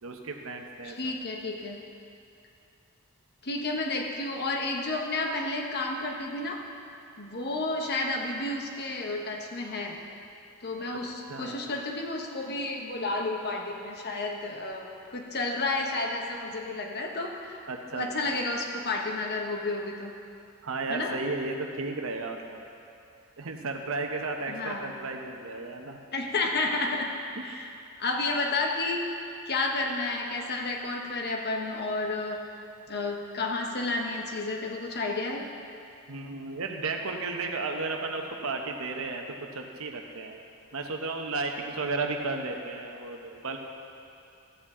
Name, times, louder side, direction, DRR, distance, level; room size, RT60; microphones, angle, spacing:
voice 1, 0.0-1.1 11.3-11.7 17.7-18.5 20.6-22.6 23.4-26.0 27.5-27.6 36.1-40.4 40.7-43.6, right 3 dB, 70° right, 3 dB, 0.9 m, -34 dB
voice 2, 0.8-1.8 3.4-6.6 7.2-10.0 10.6-17.6 17.9-20.1 20.9-21.1 24.5-24.9 26.1-27.1 27.4-27.7 28.0-29.1 29.5-32.4 32.9-35.4, left 2 dB, 50° left, 1 dB, 1.0 m, -31 dB
14.0 x 8.4 x 3.7 m, 2.6 s
head